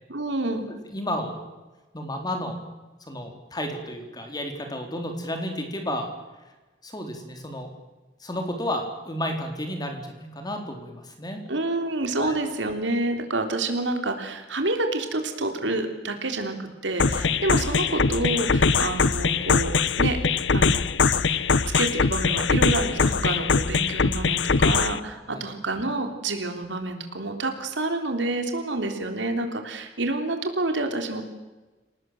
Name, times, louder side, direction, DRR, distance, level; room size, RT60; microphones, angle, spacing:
voice 1, 0.1-0.7 11.5-20.2 20.5-20.8 21.1-21.5 21.7-31.2, right 2 dB, 85° right, 5 dB, 3.5 m, -28 dB
voice 2, 0.9-1.4 1.9-2.6 3.1-6.1 6.8-7.7 8.2-11.4 12.2-12.3 17.2-17.4 25.3-25.4, left 1 dB, 20° left, 4 dB, 4.0 m, -32 dB
sound 1, 17.0-25.0, left 4 dB, 80° left, 0.9 m, -22 dB
27.5 x 18.5 x 7.8 m, 1.1 s
head